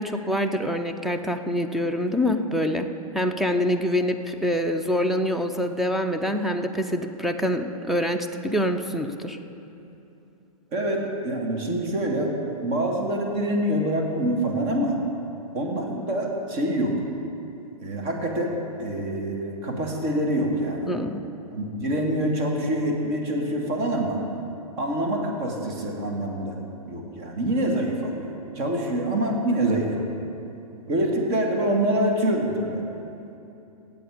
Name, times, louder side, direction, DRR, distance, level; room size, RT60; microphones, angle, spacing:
voice 1, 0.0-2.9 3.1-9.4 20.9-21.2, equal, ahead, 5 dB, 0.4 m, -25 dB
voice 2, 10.7-12.3 12.6-15.0 15.5-16.9 17.8-20.9 21.5-24.2 24.8-26.6 26.9-30.2 30.9-32.8, right 1 dB, 35° right, 1 dB, 2.2 m, -26 dB
18.0 x 7.9 x 5.0 m, 2.8 s
hypercardioid pair, 130°, 19 cm